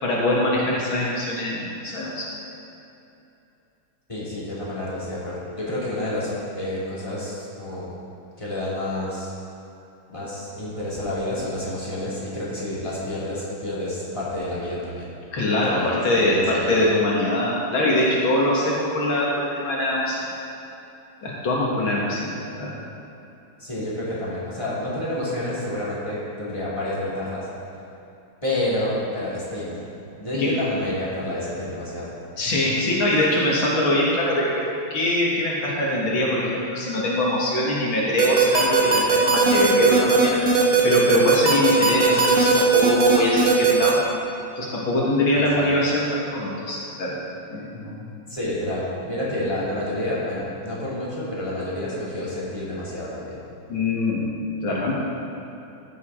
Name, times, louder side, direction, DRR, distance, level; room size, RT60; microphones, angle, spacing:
voice 1, 0.0-2.3 15.3-20.2 21.2-22.8 30.3-30.5 32.4-40.4 40.8-44.0 44.6-47.2 47.5-48.0 53.7-54.3 54.6-54.9, left 1 dB, 80° left, -5 dB, 2.4 m, -23 dB
voice 2, 4.1-7.9 8.4-9.3 10.1-15.1 15.7-16.9 23.6-27.5 28.4-29.8 30.2-32.1 45.5-45.7 48.3-53.4, left 1 dB, 15° left, -9 dB, 2.7 m, -29 dB
sound 1, 38.2-43.9, right 5 dB, 50° right, 1.6 m, -18 dB
14.5 x 8.1 x 3.8 m, 2.8 s
omnidirectional pair, 2.2 m